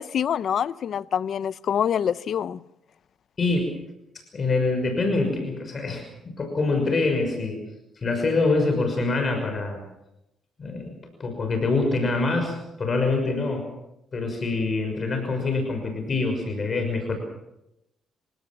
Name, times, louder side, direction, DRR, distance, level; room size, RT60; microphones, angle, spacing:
voice 1, 0.0-2.6, left 8 dB, 60° left, 0.7 m, -26 dB
voice 2, 3.4-3.7 4.1-7.6 8.0-9.8 10.6-10.9 11.2-13.7 14.1-17.2, left 3 dB, 40° left, 6.0 m, -25 dB
29.0 x 17.5 x 6.2 m
cardioid pair, 90°, 0 cm